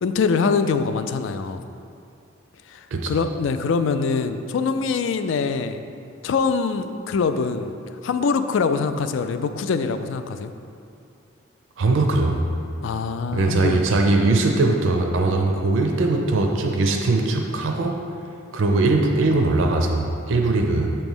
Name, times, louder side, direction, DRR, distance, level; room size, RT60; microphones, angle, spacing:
voice 1, 0.0-1.6 2.7-5.8 6.2-7.7 8.0-10.5 12.8-13.8, left 5 dB, 70° left, 10 dB, 0.3 m, -23 dB
voice 2, 11.8-12.4 13.3-18.0 18.5-20.9, right 2 dB, 70° right, 2 dB, 0.5 m, -20 dB
6.8 x 3.0 x 5.3 m, 2.5 s
head